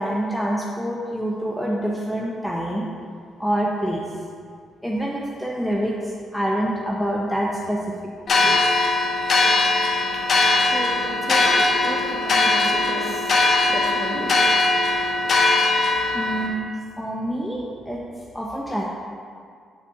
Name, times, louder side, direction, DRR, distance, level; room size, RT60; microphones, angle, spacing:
voice 1, 0.0-2.9 3.4-4.0 4.8-7.9 8.4-8.6 9.5-9.6 16.1-16.7 17.0-18.0 18.3-18.8, right 1 dB, 5° left, -3 dB, 0.8 m, -26 dB
sound 1, 8.3-16.5, left 2 dB, 50° left, 0.9 m, -20 dB
voice 2, 10.2-15.5, right 2 dB, 25° right, -2 dB, 1.5 m, -34 dB
7.4 x 4.2 x 5.5 m, 2.2 s
cardioid pair, 90°, 0 cm